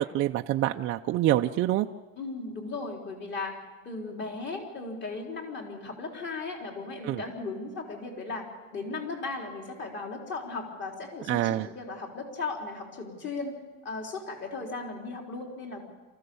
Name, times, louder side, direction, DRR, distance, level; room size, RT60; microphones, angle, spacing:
voice 1, 0.0-1.9 7.0-7.2 11.3-11.7, right 14 dB, 35° right, 4 dB, 0.6 m, -26 dB
voice 2, 2.2-3.6 3.8-8.5 8.7-13.5 13.8-15.9, left 3 dB, 30° left, 1 dB, 3.9 m, -36 dB
27.5 x 15.0 x 7.0 m, 1.2 s
supercardioid pair, 140°, 37 cm